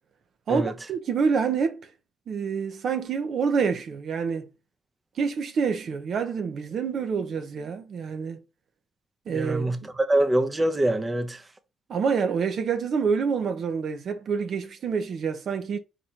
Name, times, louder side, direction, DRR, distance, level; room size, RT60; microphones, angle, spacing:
voice 1, 0.5-1.9 2.3-4.5 5.2-8.4 9.3-9.9 11.9-15.8, right 6 dB, 60° right, 0.6 m, -27 dB
voice 2, 9.3-11.4, right 1 dB, 20° right, 0.7 m, -24 dB
4.3 x 2.5 x 4.3 m
cardioid pair, 90°, 0 cm